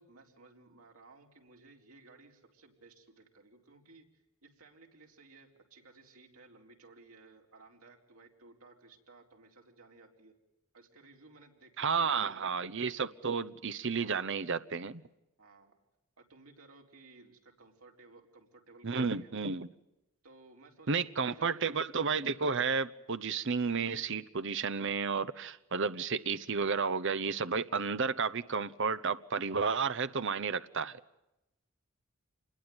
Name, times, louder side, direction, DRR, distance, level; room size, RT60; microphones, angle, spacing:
voice 1, 0.0-4.0 4.4-10.3 10.7-12.3 13.9-14.3 15.4-15.7 16.2-19.3 20.2-21.6, right 3 dB, 90° right, 4.4 m, -58 dB
voice 2, 11.8-15.0 18.8-19.7 20.9-31.0, right 5 dB, 60° right, 0.9 m, -32 dB
27.0 x 21.5 x 9.6 m
head